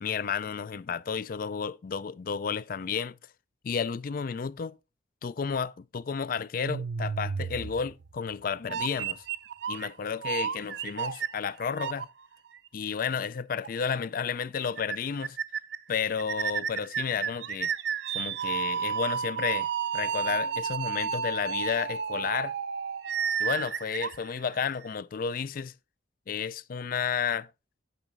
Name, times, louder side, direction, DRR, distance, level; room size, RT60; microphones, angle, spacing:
voice 1, 0.0-3.2 3.6-4.8 5.2-9.2 9.7-12.1 12.7-15.4 15.9-17.7 18.1-19.7 19.9-22.6 23.4-25.7 26.3-27.5, left 6 dB, 45° left, 0.4 m, -32 dB
sound 1, 6.6-8.2 8.7-9.9 10.2-12.0 12.5-12.6 13.6-13.7 14.0-14.1 14.4-14.5 14.8-15.0 15.2-15.8 16.2-24.8, right 7 dB, 60° right, 0.5 m, -32 dB
9.2 x 5.7 x 3.8 m
head